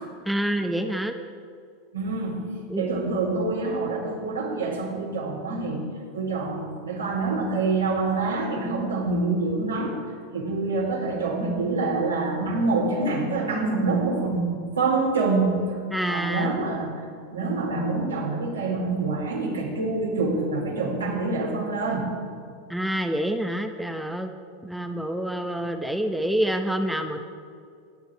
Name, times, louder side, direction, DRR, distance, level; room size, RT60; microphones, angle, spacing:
voice 1, 0.2-1.1 2.7-2.9 15.9-16.5 22.7-24.3 24.6-27.2, right 1 dB, 5° right, 5 dB, 1.1 m, -27 dB
voice 2, 1.9-5.8 6.1-10.0 10.3-15.6 16.1-17.0 17.3-22.1, right 3 dB, 80° right, -2 dB, 4.0 m, -26 dB
25.5 x 11.0 x 4.8 m, 2.3 s
figure-of-eight pair, 85°, 0 cm